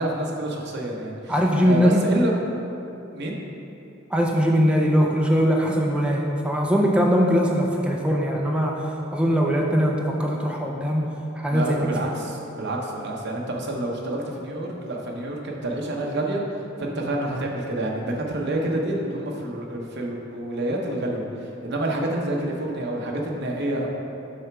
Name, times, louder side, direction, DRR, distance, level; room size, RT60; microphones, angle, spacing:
voice 1, 0.0-1.3 1.6-2.3 3.1-3.4 11.5-16.4 16.8-23.9, right 1 dB, 60° right, -1 dB, 0.9 m, -28 dB
voice 2, 1.3-2.1 4.1-11.8, equal, 5° right, -1 dB, 0.4 m, -21 dB
6.3 x 3.4 x 5.9 m, 2.8 s
head